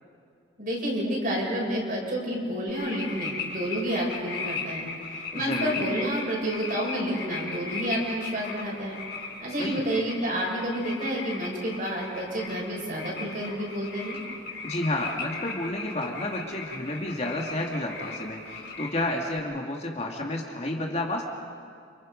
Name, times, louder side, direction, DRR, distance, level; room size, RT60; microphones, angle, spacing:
voice 1, 0.6-4.8 5.1-9.0 9.4-14.2, equal, 45° right, -2 dB, 6.7 m, -30 dB
sound 1, 2.7-19.4, left 4 dB, 55° left, 6.0 m, -37 dB
voice 2, 5.3-5.7 9.6-9.8 14.6-21.2, left 1 dB, 35° left, 0 dB, 2.4 m, -31 dB
29.5 x 28.0 x 5.4 m, 2.3 s
head